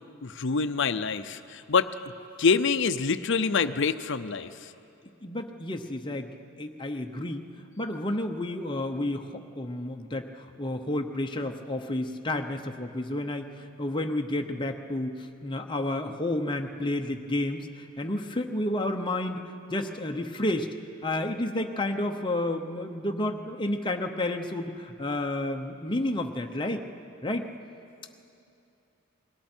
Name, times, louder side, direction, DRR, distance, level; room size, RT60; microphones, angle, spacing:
voice 1, 0.2-1.9 2.4-4.7, left 5 dB, 60° left, 12 dB, 0.7 m, -26 dB
voice 2, 5.2-6.3 6.6-7.4 7.8-20.7 21.0-26.8 27.2-27.5, left 1 dB, 25° left, 3 dB, 0.8 m, -31 dB
29.5 x 20.5 x 4.5 m, 2.7 s
head